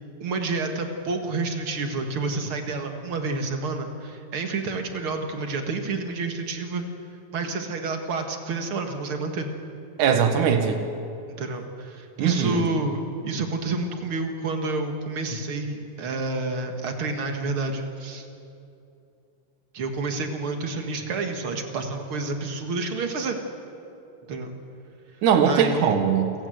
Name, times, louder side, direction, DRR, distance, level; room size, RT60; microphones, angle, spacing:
voice 1, 0.2-6.8 7.3-9.5 11.3-18.3 19.7-23.4 24.3-24.5 25.4-25.9, right 3 dB, 45° right, 5 dB, 2.2 m, -29 dB
voice 2, 10.0-10.8 12.2-12.7 25.2-26.3, right 7 dB, 70° right, 6 dB, 2.9 m, -20 dB
28.5 x 16.5 x 7.9 m, 2.7 s
omnidirectional pair, 3.8 m